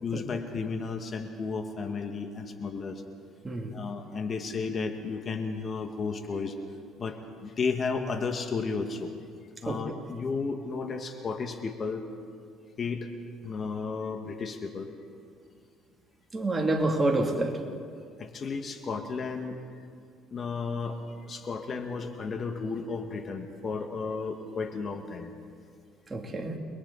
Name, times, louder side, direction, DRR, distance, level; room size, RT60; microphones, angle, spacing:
voice 1, 0.0-3.0 3.7-6.6 7.0-9.1 9.6-12.0 12.8-13.1 13.4-14.9 18.2-19.6 20.3-25.3, left 4 dB, 40° left, 5 dB, 1.8 m, -33 dB
voice 2, 3.4-3.8 9.7-9.8 16.3-17.6 26.1-26.6, right 2 dB, 20° right, 1 dB, 2.9 m, -27 dB
30.0 x 21.5 x 4.1 m, 2.2 s
supercardioid pair, 90°, 0 cm